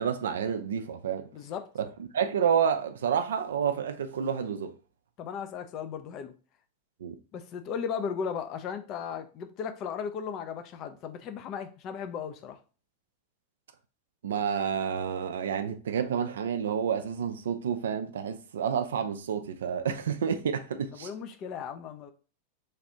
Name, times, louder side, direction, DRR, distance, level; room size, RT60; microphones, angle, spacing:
voice 1, 0.0-1.3 2.1-4.7 7.0-7.2 14.2-21.1, right 7 dB, 65° right, 0.3 m, -29 dB
voice 2, 1.3-1.7 5.2-6.3 7.3-12.6 20.9-22.1, left 7 dB, 35° left, 0.4 m, -36 dB
3.2 x 2.4 x 2.7 m
figure-of-eight pair, 90°, 0 cm